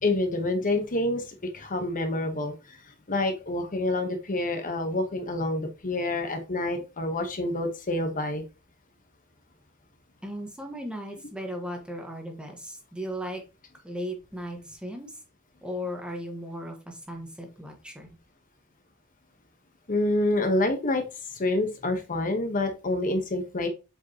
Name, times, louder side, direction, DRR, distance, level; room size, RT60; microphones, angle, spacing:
voice 1, 0.0-2.8 3.1-8.4 19.9-21.0 21.3-23.7, left 2 dB, 40° left, 5 dB, 1.1 m, -27 dB
voice 2, 10.2-13.4 13.8-15.1 15.6-18.1, equal, 5° right, 2 dB, 1.4 m, -36 dB
8.0 x 4.9 x 2.9 m, 0.29 s
head